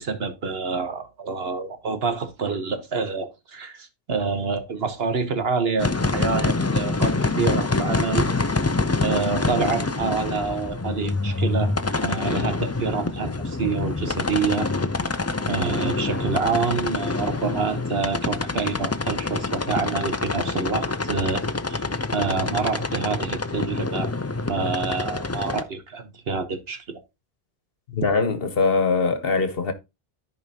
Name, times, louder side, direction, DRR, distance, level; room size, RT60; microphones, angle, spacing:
voice 1, 0.0-8.3 9.0-11.7 12.0-14.7 15.5-21.4 21.7-21.8 22.1-24.1 24.5-27.0, right 5 dB, 70° right, 1.4 m, -27 dB
sound 1, 5.8-25.6, left 3 dB, 25° left, 0.3 m, -26 dB
voice 2, 27.9-29.7, left 4 dB, 65° left, 1.2 m, -22 dB
14.0 x 5.0 x 2.8 m
omnidirectional pair, 1.1 m